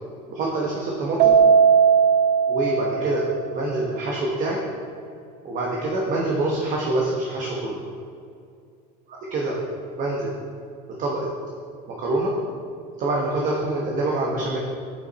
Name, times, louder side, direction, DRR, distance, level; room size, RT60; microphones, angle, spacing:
voice 1, 0.3-1.3 2.5-3.3 3.5-4.6 5.4-7.8 9.1-9.6 10.0-10.3 11.0-11.3 11.9-12.3 13.0-14.6, right 2 dB, 45° right, -2 dB, 1.3 m, -25 dB
Keyboard (musical), 1.2-3.7, right 7 dB, 60° right, 0.5 m, -18 dB
8.6 x 6.6 x 4.2 m, 2.4 s
cardioid pair, 130°, 19 cm